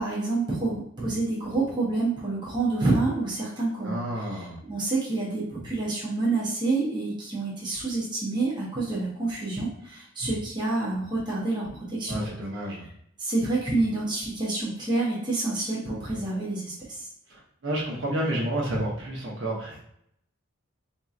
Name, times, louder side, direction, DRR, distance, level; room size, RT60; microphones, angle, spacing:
voice 1, 0.0-12.2 13.2-17.1, right 2 dB, 20° right, -6 dB, 0.9 m, -28 dB
voice 2, 3.8-4.6 12.1-12.8 17.6-19.8, right 1 dB, 60° right, -4 dB, 1.0 m, -30 dB
4.4 x 2.8 x 2.4 m, 0.73 s
head